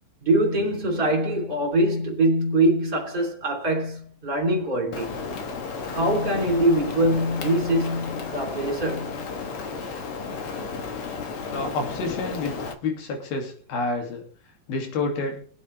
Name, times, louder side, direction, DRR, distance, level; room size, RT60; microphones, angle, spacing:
voice 1, 0.2-5.2 5.9-9.2, right 1 dB, 15° right, 3.4 m, -23 dB
Rain, 4.9-12.7, left 5 dB, 55° left, 1.7 m, -33 dB
voice 2, 11.5-15.5, left 3 dB, 85° left, 4.4 m, -29 dB
24.0 x 8.6 x 3.4 m
omnidirectional pair, 4.2 m